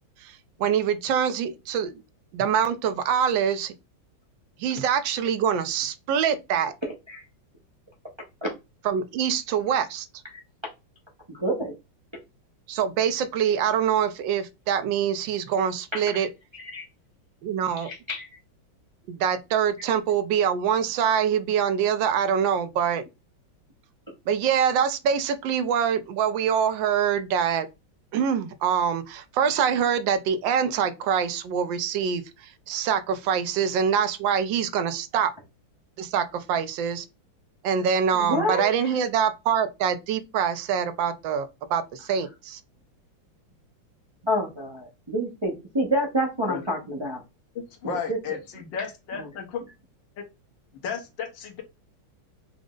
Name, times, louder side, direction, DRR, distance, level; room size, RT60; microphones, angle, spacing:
voice 1, 0.2-1.9 2.3-3.7 4.6-6.7 8.8-10.1 12.7-16.3 17.4-17.9 19.1-23.0 24.3-27.7 28.1-35.3 36.0-37.0 37.6-42.6, right 8 dB, 80° right, 1.3 m, -25 dB
voice 2, 11.4-11.7 15.9-16.3 16.5-16.8 17.8-18.3 38.1-38.7 44.2-47.2 47.8-48.2, equal, 45° right, 0.3 m, -28 dB
voice 3, 47.6-49.6 50.2-50.3 50.8-51.6, left 7 dB, 80° left, 1.6 m, -33 dB
5.0 x 2.0 x 3.6 m
omnidirectional pair, 2.0 m